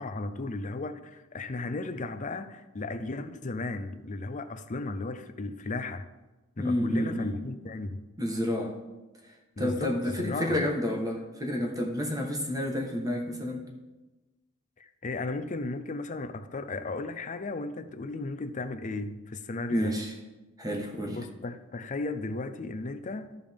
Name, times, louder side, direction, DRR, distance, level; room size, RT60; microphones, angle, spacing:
voice 1, 0.0-6.1 6.6-8.0 9.6-10.6 14.8-20.0 21.1-23.4, left 2 dB, 35° left, 0.6 m, -35 dB
voice 2, 6.6-7.4 8.2-8.7 9.6-13.7 19.7-20.1 20.6-21.2, left 1 dB, 20° right, 1.3 m, -30 dB
14.0 x 5.1 x 3.6 m
head